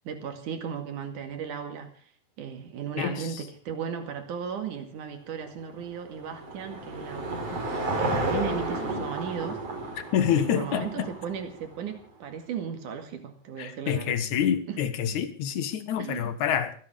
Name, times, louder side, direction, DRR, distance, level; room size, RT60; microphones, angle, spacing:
voice 1, 0.1-2.0 2.4-9.6 10.3-14.2 14.7-14.8 16.0-16.3, right 7 dB, 75° right, 3.6 m, -36 dB
voice 2, 3.0-3.3 10.1-11.1 13.6-16.7, left 9 dB, 70° left, 2.8 m, -27 dB
Car passing by / Engine, 5.4-11.9, right 2 dB, 50° right, 5.4 m, -32 dB
29.0 x 9.9 x 3.5 m
omnidirectional pair, 3.6 m